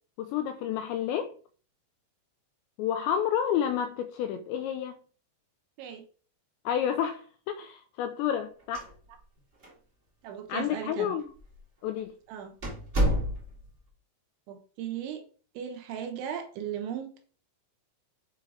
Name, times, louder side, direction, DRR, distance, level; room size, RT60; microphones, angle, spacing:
voice 1, 0.2-1.3 2.8-5.0 6.7-8.9 10.5-11.2 11.8-12.1, left 9 dB, 85° left, 2.5 m, -30 dB
sound 1, 8.6-9.4 9.6-9.7 10.5-10.6 11.4-11.6 12.0-12.1 12.6-13.7, equal, 40° right, 1.1 m, -29 dB
voice 2, 10.2-11.1 12.3-12.5 14.5-15.2 15.5-17.2, right 9 dB, 75° right, 3.2 m, -37 dB
7.9 x 4.7 x 4.9 m
omnidirectional pair, 5.8 m